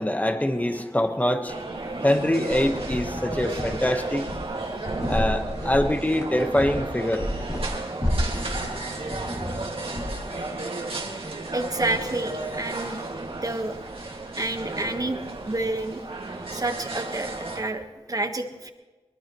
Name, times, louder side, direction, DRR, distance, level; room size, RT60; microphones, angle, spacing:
voice 1, 0.0-1.7 2.0-4.3 5.1-7.2, left 1 dB, 15° left, 6 dB, 1.2 m, -24 dB
sound 1, 1.5-17.6, right 2 dB, 60° right, 2.1 m, -33 dB
sound 2, 2.5-10.4, left 1 dB, 30° left, 2.5 m, -32 dB
voice 2, 11.5-13.0 13.4-13.8 14.4-15.2 15.4-16.0 16.5-18.7, right 2 dB, 35° right, 6 dB, 1.4 m, -29 dB
22.0 x 21.0 x 3.1 m, 1.2 s
wide cardioid pair, 80°, 11 cm